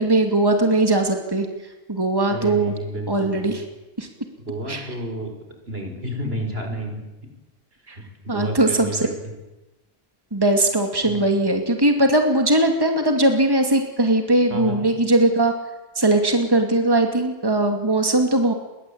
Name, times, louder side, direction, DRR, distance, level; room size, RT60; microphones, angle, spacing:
voice 1, 0.0-1.5 1.9-2.7 3.1-3.6 4.0-4.1 4.7-4.8 7.9-8.0 8.3-9.0 10.3-15.5 16.0-18.5, right 1 dB, 20° right, 4 dB, 2.6 m, -19 dB
voice 2, 2.3-3.5 4.4-5.3 5.7-7.0 7.9-9.1 11.0-11.2 14.5-14.8, equal, 70° right, 3 dB, 6.0 m, -31 dB
29.0 x 23.0 x 8.8 m, 1.0 s
omnidirectional pair, 1.1 m